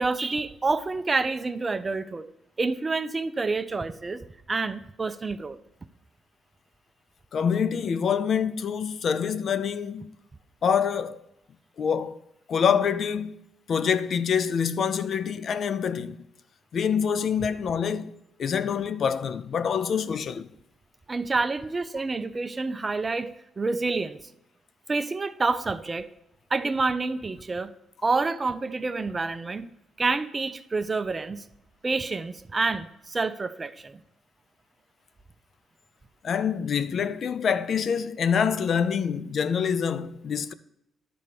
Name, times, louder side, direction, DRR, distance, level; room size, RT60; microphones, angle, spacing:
voice 1, 0.0-2.3 2.6-5.6 21.1-24.2 24.9-26.1 26.5-27.7 28.0-29.7 30.0-31.4 31.8-34.0, right 3 dB, 25° right, 0.6 m, -28 dB
voice 2, 7.3-10.2 10.6-11.2 11.8-12.2 12.5-13.4 13.7-16.2 16.7-18.1 18.4-20.5 36.2-40.5, left 7 dB, 55° left, 0.6 m, -26 dB
11.0 x 4.3 x 6.9 m
cardioid pair, 90°, 0 cm